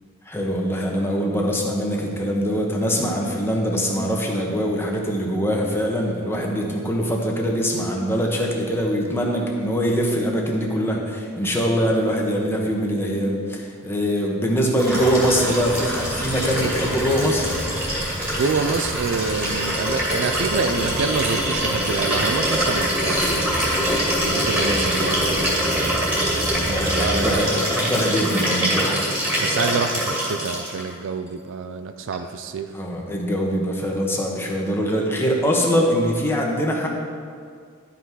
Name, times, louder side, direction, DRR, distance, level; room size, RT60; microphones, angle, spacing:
voice 1, 0.3-17.5 24.6-25.0 26.6-29.1 32.7-36.9, equal, 10° left, -1 dB, 1.2 m, -23 dB
Liquid, 14.8-30.8 32.1-32.2, equal, 10° right, 2.4 m, -24 dB
sound 1, 14.9-27.4, right 1 dB, 40° right, 1.5 m, -33 dB
voice 2, 18.4-23.8 24.3-25.6 26.7-27.7 29.4-32.7, right 5 dB, 60° right, 9 dB, 0.4 m, -27 dB
12.0 x 5.7 x 4.7 m, 2.1 s
head